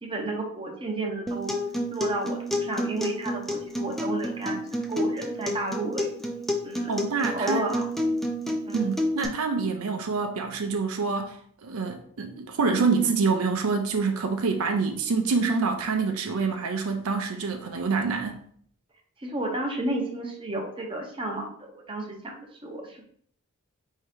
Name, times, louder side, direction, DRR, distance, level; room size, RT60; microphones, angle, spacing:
voice 1, 0.0-1.6 1.9-4.6 4.9-6.1 6.6-6.9 7.2-7.9 8.7-8.9 19.2-23.0, right 2 dB, 25° right, 0.7 m, -32 dB
Acoustic guitar, 1.3-9.3, left 1 dB, ahead, 0.3 m, -30 dB
voice 2, 6.9-7.6 8.7-18.4, right 4 dB, 70° right, 0.5 m, -26 dB
4.6 x 2.7 x 3.4 m
head